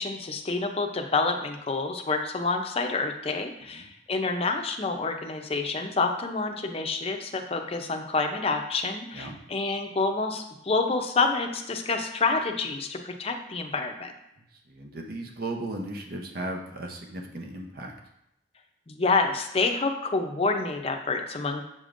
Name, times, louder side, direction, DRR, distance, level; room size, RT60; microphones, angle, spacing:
voice 1, 0.0-14.1 18.9-21.6, left 3 dB, 35° left, 4 dB, 0.6 m, -28 dB
voice 2, 14.7-17.9, right 2 dB, 55° right, 2 dB, 0.8 m, -36 dB
7.2 x 5.1 x 2.5 m, 0.81 s
head